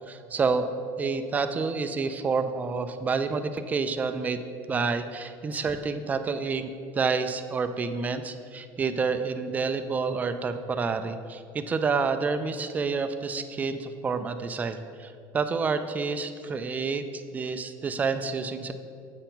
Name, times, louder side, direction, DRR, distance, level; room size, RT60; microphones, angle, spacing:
voice 1, 0.1-0.7 1.0-4.4 4.7-18.7, right 4 dB, 20° right, 9 dB, 0.3 m, -29 dB
7.9 x 4.3 x 3.9 m, 2.4 s
cardioid pair, 130°, 8 cm